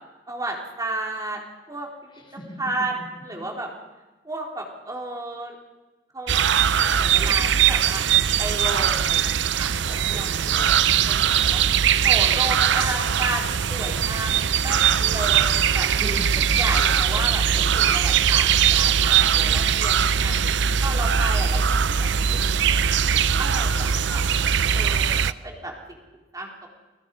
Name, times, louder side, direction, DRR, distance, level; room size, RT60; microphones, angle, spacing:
voice 1, 0.3-1.4 1.7-1.9 2.6-3.0 3.2-3.7 4.2-5.5 6.1-6.4 6.8-8.0 8.4-10.8 11.1-11.6 12.0-16.2 16.6-17.4 17.7-20.4 20.8-21.6 21.9-22.1 23.4-24.2 24.7-25.2 25.4-26.0 26.3-26.5, right 2 dB, 20° right, 0 dB, 4.1 m, -32 dB
voice 2, 2.1-2.6 3.0-3.1 3.3-3.5 6.8-7.2 9.9-10.4 16.0-16.3 17.7-17.9 22.3-22.9, equal, 25° left, 4 dB, 3.9 m, -40 dB
sound 1, 6.3-25.3, right 8 dB, 70° right, 0.6 m, -21 dB
29.5 x 23.0 x 5.5 m, 1.2 s
head